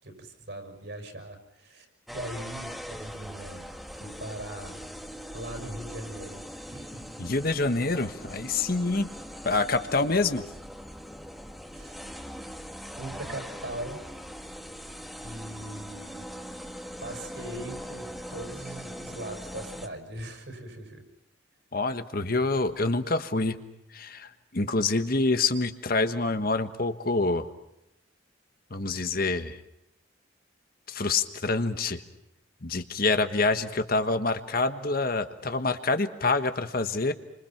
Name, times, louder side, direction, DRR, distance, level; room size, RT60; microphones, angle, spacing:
voice 1, 0.0-4.8 5.1-7.0 11.7-12.1 12.9-14.0 15.2-16.3 17.0-21.0, right 1 dB, 65° right, 5 dB, 5.9 m, -40 dB
sound 1, 2.1-19.9, equal, ahead, 1.8 m, -41 dB
voice 2, 7.2-9.1 9.4-10.4 21.7-23.6 23.9-27.5 28.7-29.6 30.9-32.0 32.6-37.1, left 3 dB, 50° left, 9 dB, 1.3 m, -26 dB
28.5 x 25.5 x 5.9 m, 0.83 s
head